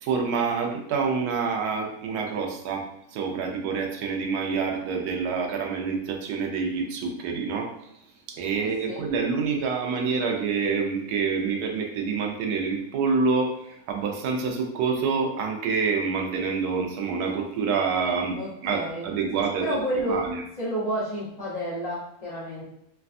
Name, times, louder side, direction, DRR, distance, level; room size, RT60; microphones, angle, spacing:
voice 1, 0.0-2.8 3.1-7.7 8.3-19.7 20.1-20.4, right 5 dB, 75° right, 1 dB, 1.1 m, -27 dB
voice 2, 8.6-9.0 18.3-19.1 19.6-20.2 20.6-22.7, right 1 dB, 35° left, -11 dB, 0.7 m, -30 dB
3.2 x 2.2 x 2.5 m, 0.79 s
omnidirectional pair, 1.7 m